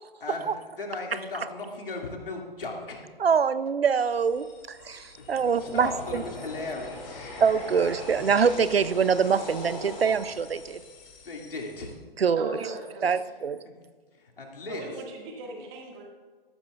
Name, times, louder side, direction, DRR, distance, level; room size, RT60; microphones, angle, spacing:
voice 1, 0.2-3.0 5.2-7.3 11.2-11.9 13.6-13.7 14.1-15.0, left 3 dB, 65° left, 1 dB, 2.3 m, -37 dB
voice 2, 3.2-6.2 7.4-10.8 12.2-12.6 13.0-13.6, right 6 dB, 80° right, 15 dB, 0.6 m, -24 dB
sound 1, 4.0-11.9, left 2 dB, 35° left, 2.4 m, -41 dB
voice 3, 12.3-13.2 14.7-16.0, right 2 dB, 25° right, 0 dB, 1.8 m, -39 dB
14.0 x 12.0 x 2.4 m, 1.4 s
figure-of-eight pair, 135°, 29 cm